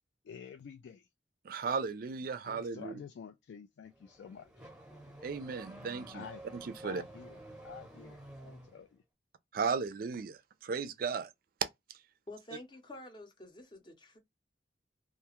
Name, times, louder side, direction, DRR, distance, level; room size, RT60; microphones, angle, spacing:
voice 1, 0.2-1.1 2.5-4.5 6.1-6.4 6.8-7.4 7.6-9.0, left 7 dB, 80° left, 0.3 m, -49 dB
voice 2, 1.4-2.9 5.2-6.3 6.5-7.0 9.5-11.3, right 5 dB, 55° right, 0.3 m, -35 dB
Car / Accelerating revving vroom, 3.8-8.9, right 1 dB, 5° right, 0.8 m, -51 dB
voice 3, 12.3-14.2, left 1 dB, 25° left, 0.7 m, -49 dB
2.4 x 2.3 x 2.8 m
head